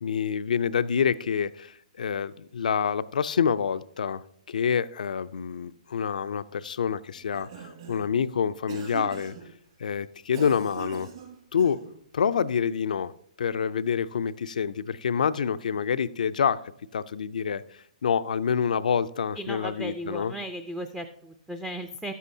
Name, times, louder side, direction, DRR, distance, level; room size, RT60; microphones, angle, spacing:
voice 1, 0.0-4.2 4.5-9.3 9.8-11.1 11.5-11.8 12.1-13.1 13.4-16.6 16.9-17.6 18.0-20.3, left 7 dB, 75° left, 15 dB, 0.4 m, -27 dB
Cough, 7.1-8.1 8.7-9.5 10.3-12.0, right 7 dB, 55° right, 4.0 m, -41 dB
voice 2, 19.4-22.1, right 1 dB, 5° right, 6 dB, 0.4 m, -36 dB
12.0 x 8.2 x 2.7 m, 0.67 s
hypercardioid pair, 135°, 4 cm